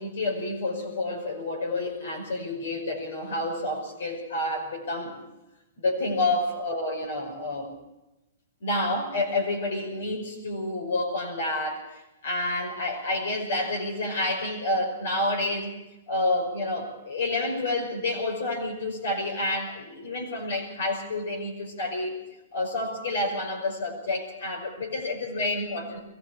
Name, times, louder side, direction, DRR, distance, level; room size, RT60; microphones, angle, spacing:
voice 1, 0.0-5.2 5.8-7.7 8.6-11.8 12.2-15.7 16.1-22.1 22.5-26.0, left 2 dB, 80° left, 1 dB, 5.4 m, -29 dB
22.5 x 16.5 x 7.0 m, 0.97 s
hypercardioid pair, 175°, 0 cm